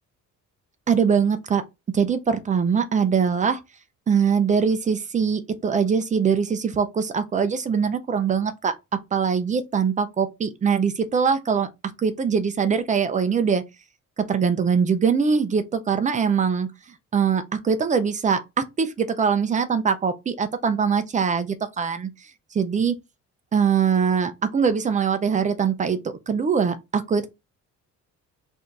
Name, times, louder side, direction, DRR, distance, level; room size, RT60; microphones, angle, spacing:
voice 1, 0.9-1.6 1.9-3.6 4.1-8.7 9.1-11.7 12.0-13.6 14.2-16.7 17.1-22.1 22.6-22.9 23.5-26.0 26.3-27.3, right 6 dB, 25° right, 0.5 m, -22 dB
4.8 x 2.7 x 3.8 m
cardioid pair, 160°, 31 cm